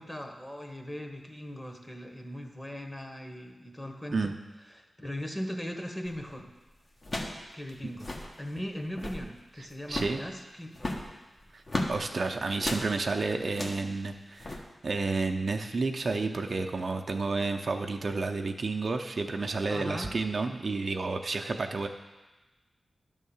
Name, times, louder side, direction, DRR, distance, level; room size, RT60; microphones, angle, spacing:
voice 1, 0.0-4.3 4.7-6.5 7.5-11.0 19.7-20.1, equal, 15° left, 4 dB, 1.1 m, -39 dB
sound 1, 6.1-6.3 7.0-7.4 7.7-7.8 8.0-8.3 8.8-9.3 9.9-10.2 10.8-12.0 12.6-12.9 13.5-13.9 14.4-14.6, left 1 dB, 50° left, 1.2 m, -34 dB
voice 2, 9.9-10.3 11.5-11.6 11.9-21.9, right 3 dB, 60° right, 4 dB, 0.6 m, -31 dB
10.5 x 3.7 x 7.1 m, 1.1 s
cardioid pair, 55°, 0 cm